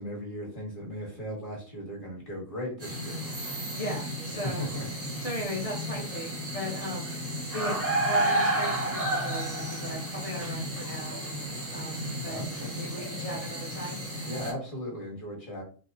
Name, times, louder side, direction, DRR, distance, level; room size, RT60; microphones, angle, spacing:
voice 1, 0.0-3.2 4.4-4.9 12.3-12.8 14.3-15.6, equal, 25° left, -4 dB, 0.9 m, -37 dB
sound 1, 2.8-14.5, right 1 dB, 15° right, 0.5 m, -32 dB
voice 2, 3.7-4.6 5.2-7.2 7.5-11.4 11.7-12.4 12.7-14.0, equal, 45° left, -6 dB, 0.4 m, -37 dB
2.8 x 2.0 x 2.5 m, 0.40 s
omnidirectional pair, 1.7 m